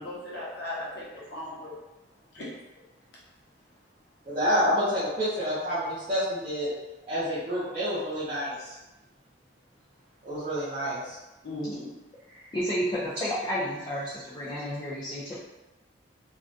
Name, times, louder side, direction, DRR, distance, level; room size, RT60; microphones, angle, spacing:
voice 1, 0.0-1.7 2.3-2.6 11.4-12.0, left 1 dB, 60° left, -5 dB, 0.7 m, -37 dB
voice 2, 4.3-6.7 7.1-8.8 10.2-11.2 12.3-12.5, equal, 35° right, -13 dB, 0.6 m, -28 dB
voice 3, 12.5-15.4, equal, 25° left, -10 dB, 0.4 m, -31 dB
2.4 x 2.2 x 2.5 m, 1.0 s
head